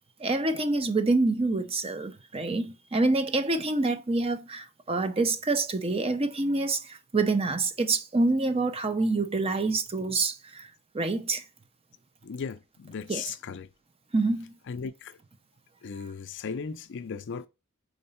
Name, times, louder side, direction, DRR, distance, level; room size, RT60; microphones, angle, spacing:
voice 1, 0.2-10.7 10.9-11.4 13.1-13.2 14.1-14.5, right 3 dB, 25° right, 0.6 m, -27 dB
voice 2, 12.2-13.7 14.7-15.2 15.8-17.5, left 6 dB, 55° left, 0.4 m, -37 dB
4.3 x 3.9 x 5.5 m
head